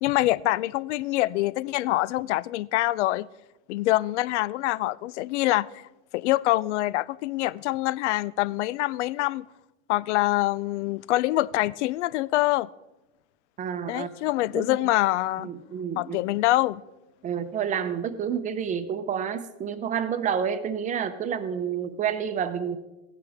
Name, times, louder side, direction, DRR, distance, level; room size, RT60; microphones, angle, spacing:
voice 1, 0.0-3.3 3.7-5.8 6.1-9.5 9.9-12.7 13.9-15.5 16.0-16.8, left 17 dB, 75° left, 0.5 m, -25 dB
voice 2, 13.6-14.1 14.5-14.7 15.4-16.2 17.2-22.8, right 8 dB, 20° right, 0.7 m, -29 dB
15.5 x 10.0 x 3.5 m
supercardioid pair, 140°, 35 cm